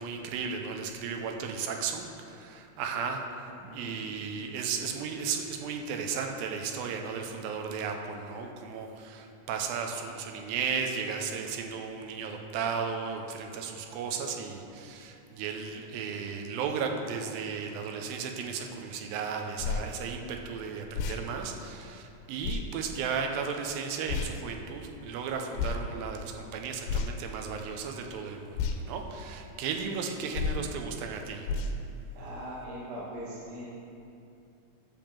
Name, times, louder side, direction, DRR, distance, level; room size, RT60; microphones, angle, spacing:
voice 1, 0.0-31.5, right 6 dB, 85° right, 3 dB, 2.5 m, -35 dB
sound 1, 19.6-19.9 20.9-21.2 22.4-22.6 24.1-24.3 25.6-25.8 26.8-27.3 28.6-28.8 30.3-30.7 31.5-31.8, left 5 dB, 90° left, 2.5 m, -30 dB
voice 2, 32.2-33.7, right 1 dB, 65° right, -8 dB, 2.5 m, -41 dB
10.5 x 3.6 x 7.2 m, 2.7 s
omnidirectional pair, 4.1 m